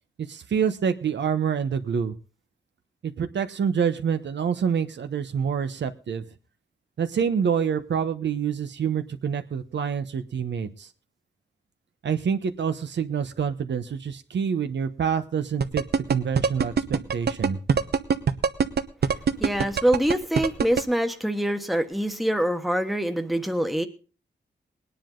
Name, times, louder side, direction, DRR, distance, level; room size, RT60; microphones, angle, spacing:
voice 1, 0.2-2.1 3.0-6.2 7.0-10.9 12.0-15.8 16.1-17.6, right 7 dB, 85° right, 8 dB, 1.2 m, -27 dB
sound 1, 15.6-20.8, right 6 dB, 65° right, 1.0 m, -22 dB
voice 2, 19.4-23.9, right 1 dB, ahead, 6 dB, 1.2 m, -25 dB
20.0 x 10.0 x 3.9 m, 0.36 s
wide cardioid pair, 140°, 18 cm